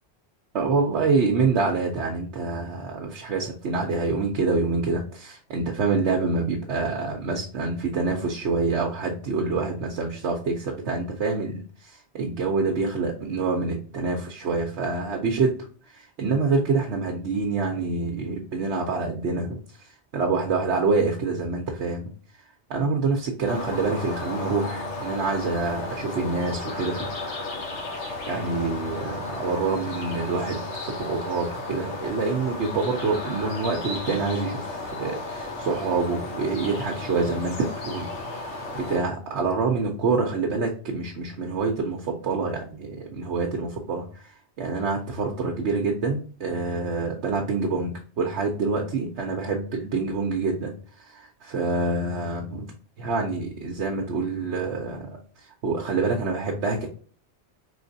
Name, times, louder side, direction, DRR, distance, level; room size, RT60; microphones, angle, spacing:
voice 1, 0.5-15.5 15.9-19.6 20.1-22.1 22.7-27.0 27.9-38.1 38.4-44.2 44.6-50.7 51.0-52.7 53.0-55.2 55.6-56.9, right 4 dB, 75° right, 0 dB, 1.0 m, -26 dB
sound 1, 23.4-39.0, left 2 dB, 75° left, 1.2 m, -34 dB
4.2 x 3.2 x 2.6 m, 0.41 s
omnidirectional pair, 1.2 m